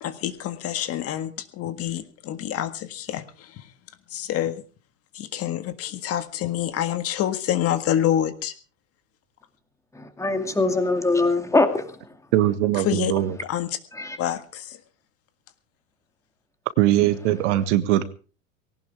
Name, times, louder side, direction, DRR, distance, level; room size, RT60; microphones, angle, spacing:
voice 1, 0.0-3.7 4.1-4.6 5.1-8.5 12.7-13.1 13.4-13.8 14.2-14.8, left 11 dB, 35° left, 10 dB, 1.7 m, -27 dB
voice 2, 9.9-12.0 13.9-14.2, left 2 dB, 5° left, 7 dB, 2.4 m, -22 dB
voice 3, 12.3-13.3 16.8-18.0, right 13 dB, 60° right, 12 dB, 1.6 m, -21 dB
19.5 x 18.0 x 3.5 m, 0.37 s
hypercardioid pair, 120°, 40 cm